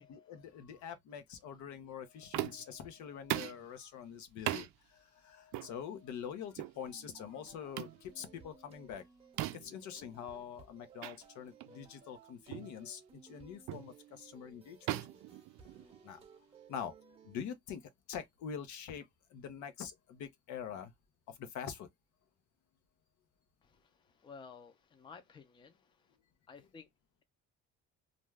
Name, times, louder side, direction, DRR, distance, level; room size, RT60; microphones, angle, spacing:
voice 1, 0.0-9.0 9.5-15.1 16.0-16.2 16.7-16.9 17.2-20.9 21.3-21.9, left 8 dB, 80° left, 0.8 m, -45 dB
sound 1, 2.3-2.8 3.3-3.6 4.5-4.7 5.5-5.7 6.6-6.8 7.8-8.0 9.4-9.8 11.0-11.2 11.6-11.8 12.5-12.7 13.7-13.9 14.9-16.1, right 15 dB, 75° right, 0.4 m, -38 dB
sound 2, 6.8-17.4, right 5 dB, 20° right, 0.6 m, -60 dB
voice 2, 23.6-25.9 26.5-26.9, left 5 dB, 15° left, 0.4 m, -54 dB
2.5 x 2.3 x 3.2 m
cardioid pair, 155°, 29 cm